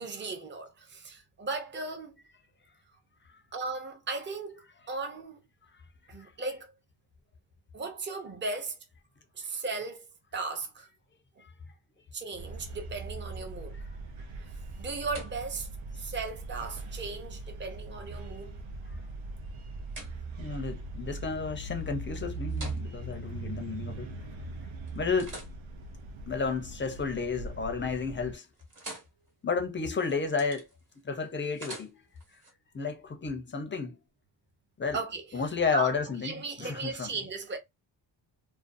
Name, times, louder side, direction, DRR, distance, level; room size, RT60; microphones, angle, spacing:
voice 1, 0.0-2.2 3.5-4.6 4.9-5.4 6.1-6.7 7.7-8.8 9.3-10.0 10.3-10.9 11.4-11.5 12.1-13.8 14.8-15.7 16.0-18.6 34.9-35.2 35.7-35.9 36.2-37.6, right 3 dB, 25° right, 0.5 m, -36 dB
sound 1, 12.4-28.3, right 2 dB, 90° right, 0.6 m, -40 dB
sound 2, 14.4-24.4 24.9-27.1 27.5-27.9 28.2-32.5, right 2 dB, 40° right, 1.1 m, -51 dB
voice 2, 20.4-24.1 24.9-25.4 26.3-28.5 29.4-30.7 31.0-32.0 32.7-34.0 34.8-35.0 35.3-37.1, left 5 dB, 25° left, 0.4 m, -32 dB
2.5 x 2.1 x 2.4 m
wide cardioid pair, 160°, 46 cm